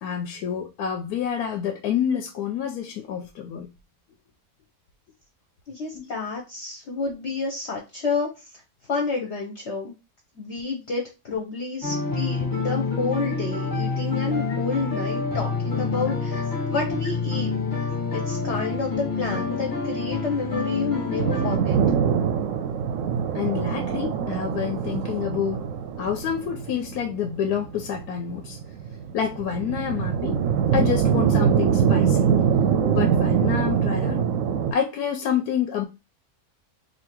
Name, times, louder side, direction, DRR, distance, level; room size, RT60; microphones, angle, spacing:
voice 1, 0.0-3.7 5.9-6.1 23.3-25.6 26.0-28.6 29.1-30.4 30.7-32.4 32.9-34.3 34.7-35.9, left 8 dB, 85° left, 1.1 m, -28 dB
voice 2, 5.7-8.6 8.9-9.9 10.3-21.8, left 4 dB, 55° left, 0.9 m, -30 dB
sound 1, 11.8-21.6, left 4 dB, 15° left, 0.9 m, -27 dB
sound 2, 21.2-34.7, right 7 dB, 70° right, 0.9 m, -23 dB
2.8 x 2.7 x 4.3 m
omnidirectional pair, 1.6 m